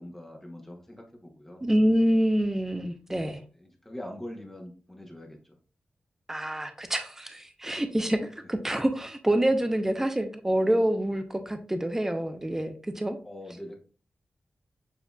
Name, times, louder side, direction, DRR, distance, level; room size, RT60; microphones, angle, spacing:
voice 1, 0.0-1.6 3.5-5.6 8.4-8.5 13.2-13.8, left 1 dB, 10° left, 1 dB, 0.9 m, -43 dB
voice 2, 1.6-3.4 6.3-13.2, right 1 dB, 10° right, 7 dB, 0.5 m, -26 dB
7.1 x 2.8 x 2.3 m, 0.39 s
wide cardioid pair, 100°, 3 cm